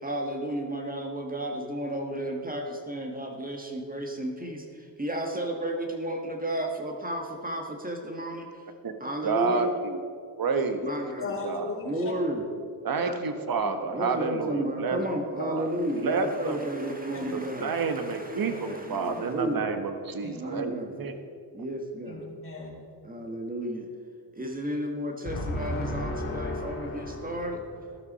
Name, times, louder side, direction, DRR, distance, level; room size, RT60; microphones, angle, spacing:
voice 1, 0.0-8.6 9.0-9.7 10.8-11.3 11.8-12.5 13.0-13.2 13.9-19.7 20.3-21.0 21.5-22.2 23.0-23.9 24.3-27.6, right 1 dB, 20° right, 3 dB, 1.5 m, -33 dB
voice 2, 9.2-10.0 10.4-10.8 11.4-11.7 12.8-15.0 15.4-16.6 17.3-21.2, right 4 dB, 45° right, 7 dB, 1.4 m, -29 dB
voice 3, 11.2-12.1 13.6-13.7 17.1-17.2 18.4-18.6 19.0-19.1 20.2-20.4 22.0-22.8 25.2-28.0, left 2 dB, 25° left, -4 dB, 3.3 m, -35 dB
13.5 x 12.0 x 4.2 m, 2.3 s
cardioid pair, 85°, 47 cm